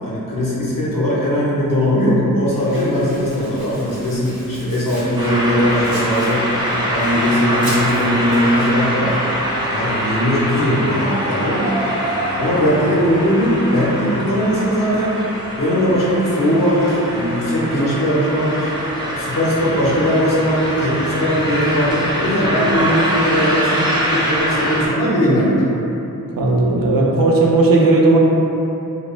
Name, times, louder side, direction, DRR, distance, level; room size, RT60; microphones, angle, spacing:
voice 1, 0.0-6.4 6.9-9.2 9.7-11.7 12.4-15.2 15.6-18.7 19.2-25.6, equal, 70° left, -7 dB, 0.7 m, -19 dB
Domestic sounds home sounds, 2.5-8.9, right 1 dB, 90° right, 0.8 m, -37 dB
sound 1, 5.2-24.9, equal, 15° right, 0.5 m, -23 dB
voice 2, 26.3-28.2, right 2 dB, 70° right, -3 dB, 0.5 m, -14 dB
2.3 x 2.3 x 3.0 m, 2.9 s
wide cardioid pair, 65°, 35 cm